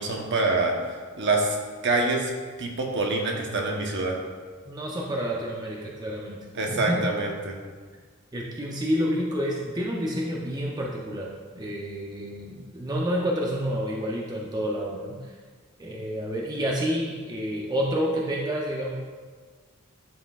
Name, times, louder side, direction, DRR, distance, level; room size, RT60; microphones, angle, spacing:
voice 1, 0.0-1.6 1.8-2.3 2.6-4.2 6.5-7.5, right 2 dB, 55° right, 0 dB, 1.0 m, -26 dB
voice 2, 4.7-6.4 6.7-7.0 8.3-15.4 15.8-18.9, equal, 20° right, -2 dB, 0.6 m, -29 dB
11.0 x 4.3 x 2.4 m, 1.5 s
head